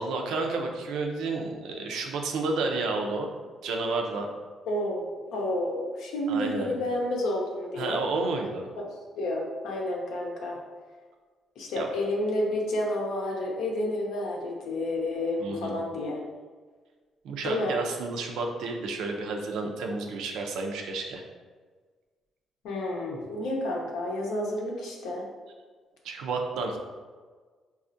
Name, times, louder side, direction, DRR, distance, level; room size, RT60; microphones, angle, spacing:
voice 1, 0.0-3.3 3.6-4.3 6.3-6.8 7.8-8.7 11.8-11.9 15.4-15.8 17.2-21.2 26.0-26.8, right 3 dB, 85° right, 2 dB, 0.4 m, -31 dB
voice 2, 4.7-8.0 8.8-8.9 9.2-10.6 11.6-16.2 17.4-17.7 22.6-25.2, left 1 dB, 90° left, -1 dB, 0.6 m, -30 dB
4.1 x 2.3 x 2.6 m, 1.5 s
cardioid pair, 90°, 0 cm